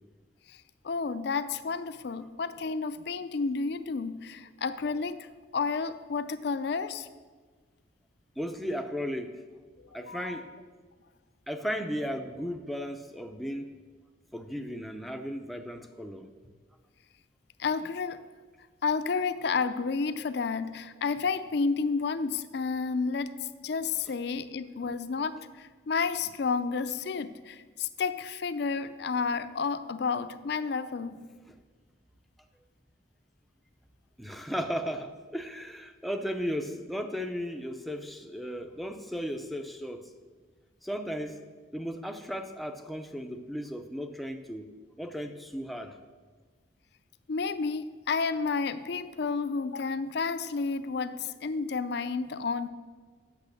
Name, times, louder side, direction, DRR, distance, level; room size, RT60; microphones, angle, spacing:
voice 1, 0.5-5.3 5.5-7.1 9.8-10.4 17.6-18.2 18.8-23.3 23.6-31.2 47.3-52.7, left 4 dB, 60° left, 12 dB, 0.5 m, -31 dB
voice 2, 8.4-9.4 9.9-10.5 11.5-13.7 14.3-16.3 34.2-40.1 40.8-41.5 41.7-44.7 45.0-46.0, equal, ahead, 5 dB, 0.5 m, -35 dB
8.3 x 6.8 x 6.5 m, 1.4 s
head